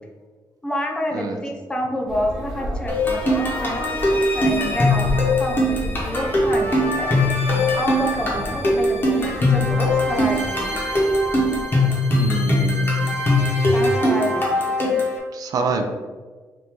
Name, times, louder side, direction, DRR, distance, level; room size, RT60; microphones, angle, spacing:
voice 1, 0.6-3.8 4.3-7.2 7.7-10.8 13.7-15.0, left 1 dB, 10° left, 1 dB, 0.5 m, -28 dB
sound 1, 2.1-11.6, equal, 5° right, 0.9 m, -34 dB
sound 2, 2.9-15.2, left 1 dB, 30° left, 1.0 m, -21 dB
voice 2, 12.1-13.1 15.3-15.9, right 4 dB, 55° right, 5 dB, 0.4 m, -26 dB
3.5 x 2.6 x 4.4 m, 1.4 s
wide cardioid pair, 175°, 8 cm